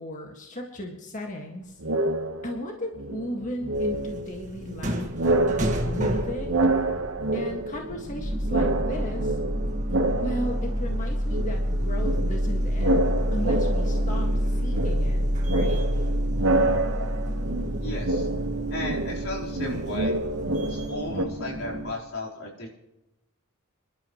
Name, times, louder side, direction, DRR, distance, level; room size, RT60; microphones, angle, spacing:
voice 1, 0.0-1.8 2.4-5.5 5.8-6.6 7.3-9.4 10.2-15.3 15.5-15.9, equal, 35° left, 1 dB, 1.9 m, -36 dB
sound 1, 1.8-2.7 3.0-4.9 5.1-8.2 8.5-11.0 11.3-21.2, right 2 dB, 75° right, 1.3 m, -28 dB
sound 2, 3.7-21.9, equal, 35° right, 1.7 m, -28 dB
voice 2, 17.8-18.3 18.7-20.2 20.7-22.7, left 1 dB, 90° left, -3 dB, 4.1 m, -34 dB
28.0 x 12.0 x 3.1 m, 0.93 s
head